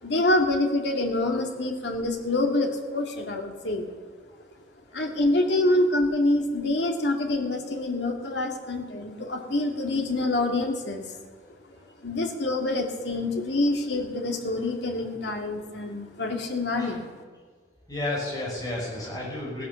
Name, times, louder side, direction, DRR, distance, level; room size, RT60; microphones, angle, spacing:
voice 1, 0.0-3.9 4.9-11.2 12.0-17.1, left 2 dB, 70° left, 2 dB, 2.1 m, -26 dB
voice 2, 17.9-19.6, left 2 dB, 20° left, -4 dB, 5.7 m, -32 dB
16.5 x 11.0 x 7.1 m, 1.5 s
head